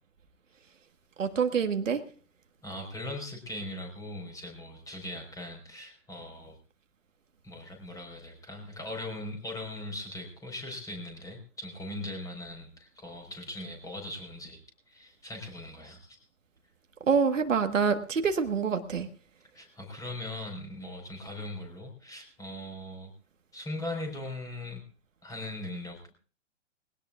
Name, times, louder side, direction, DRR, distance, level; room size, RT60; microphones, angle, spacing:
voice 1, 1.2-2.0 17.0-19.1, right 6 dB, 80° right, 7 dB, 1.5 m, -26 dB
voice 2, 2.6-6.6 7.4-14.6 14.9-16.2 19.5-23.1 23.5-24.8 25.2-26.1, left 1 dB, 10° left, 2 dB, 4.4 m, -40 dB
21.5 x 17.0 x 2.4 m, 0.40 s
hypercardioid pair, 125°, 38 cm